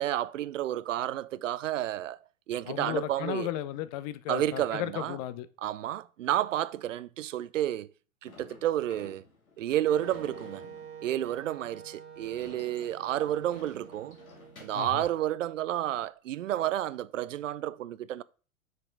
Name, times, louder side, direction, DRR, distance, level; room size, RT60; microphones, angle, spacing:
voice 1, 0.0-2.2 2.5-3.5 4.3-5.2 5.6-7.9 8.2-9.2 9.6-10.6 11.0-14.2 14.6-18.2, right 12 dB, 65° right, 0.5 m, -31 dB
voice 2, 2.7-5.5 14.7-15.0, left 13 dB, 30° left, 0.4 m, -35 dB
Sliding door / Slam, 8.3-14.9, left 4 dB, 75° left, 2.1 m, -53 dB
Wind instrument woodwind instrument, 9.8-15.7, right 8 dB, 35° right, 1.4 m, -47 dB
6.2 x 4.8 x 4.4 m
figure-of-eight pair, 90°, 42 cm